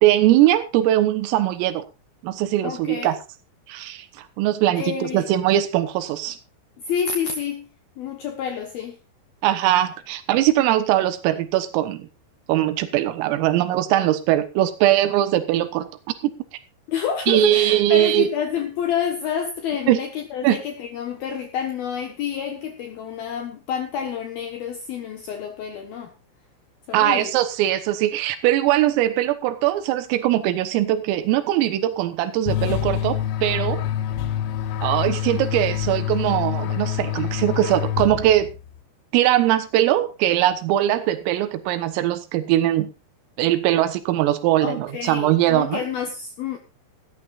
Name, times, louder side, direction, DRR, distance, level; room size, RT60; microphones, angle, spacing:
voice 1, 0.0-1.8 2.2-3.2 3.7-6.4 9.4-12.1 12.5-15.9 17.3-18.3 19.9-20.0 20.4-20.6 26.9-33.8 34.8-38.5 39.1-42.9 43.4-45.8, right 13 dB, 90° right, 11 dB, 3.9 m, -21 dB
voice 2, 2.6-3.2 4.8-5.3 6.9-7.7 8.0-9.0 16.9-26.1 26.9-27.3 35.1-35.2 44.6-46.6, left 7 dB, 65° left, 5 dB, 2.6 m, -28 dB
sound 1, 32.5-38.6, left 10 dB, 80° left, 4.0 m, -26 dB
17.5 x 14.0 x 2.5 m, 0.29 s
omnidirectional pair, 5.8 m